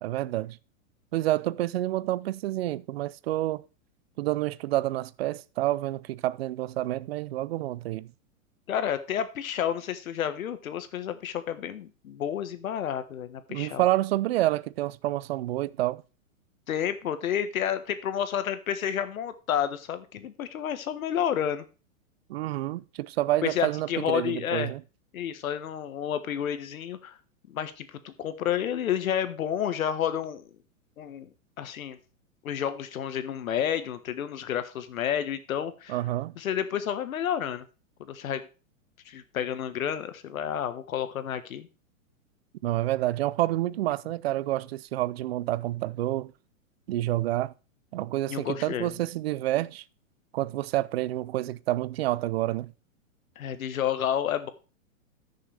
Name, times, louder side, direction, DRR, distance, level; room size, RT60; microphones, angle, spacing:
voice 1, 0.0-0.6 1.1-3.6 4.2-8.1 13.5-16.0 22.3-24.8 35.9-36.3 42.6-46.3 46.9-47.5 47.9-49.8 50.3-52.7, right 15 dB, 50° right, 0.5 m, -28 dB
voice 2, 8.7-13.9 16.7-21.6 23.4-24.7 25.1-27.2 27.5-30.4 31.0-31.3 31.6-32.0 32.4-36.0 36.4-37.6 38.0-38.4 39.0-41.7 48.3-48.9 53.4-54.5, left 9 dB, 80° left, 1.5 m, -30 dB
14.5 x 6.6 x 3.4 m
hypercardioid pair, 150°, 41 cm